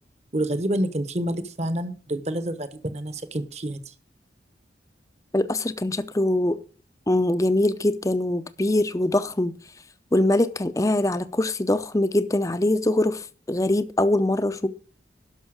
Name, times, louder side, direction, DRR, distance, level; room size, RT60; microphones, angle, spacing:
voice 1, 0.3-3.9, right 1 dB, 35° right, 1.0 m, -28 dB
voice 2, 5.3-6.6 7.1-9.5 10.1-14.7, left 1 dB, 20° left, 0.6 m, -23 dB
12.0 x 5.7 x 6.3 m
head